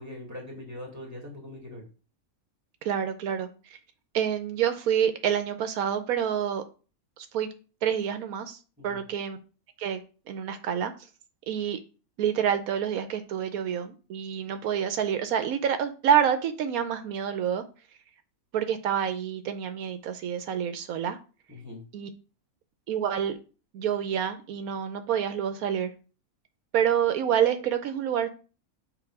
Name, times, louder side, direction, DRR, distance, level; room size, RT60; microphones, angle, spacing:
voice 1, 0.0-1.8 8.8-9.0 21.5-21.8, left 1 dB, 10° right, -2 dB, 2.3 m, -41 dB
voice 2, 2.8-3.8 4.1-6.6 7.2-7.5 7.8-8.6 8.8-9.4 9.8-10.0 10.3-10.9 11.5-11.8 12.2-17.6 18.5-21.2 21.9-22.1 22.9-23.4 23.7-25.9 26.7-28.3, right 8 dB, 80° right, 9 dB, 1.1 m, -27 dB
6.9 x 3.7 x 4.7 m, 0.35 s
omnidirectional pair, 1.5 m